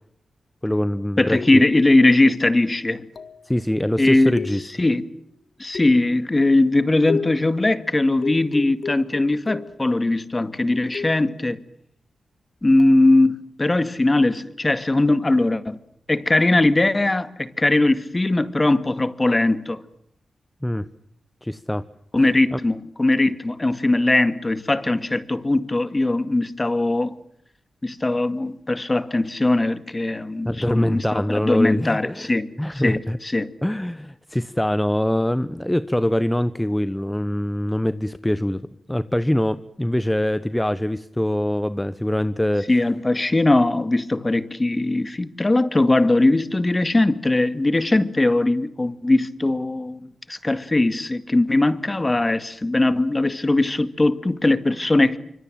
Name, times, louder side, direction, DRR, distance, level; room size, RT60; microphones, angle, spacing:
voice 1, 0.6-1.4 3.4-4.7 20.6-20.9 21.4-21.8 22.5-22.6 30.4-32.3 32.6-33.2 33.6-38.6 38.9-42.7, left 1 dB, 10° left, 1.1 m, -23 dB
voice 2, 1.2-3.1 4.0-4.3 4.8-5.1 5.6-11.6 12.6-15.8 16.1-19.8 22.1-27.1 27.8-32.5 32.8-33.5 42.7-55.2, left 2 dB, 25° left, 2.1 m, -20 dB
sound 1, 1.4-1.9 3.2-3.5 4.4-5.0 5.7-6.2 7.1-7.6 8.2-9.9 10.9-11.4 12.8-13.0, left 5 dB, 65° left, 1.8 m, -33 dB
26.0 x 25.5 x 7.6 m
cardioid pair, 65°, 0 cm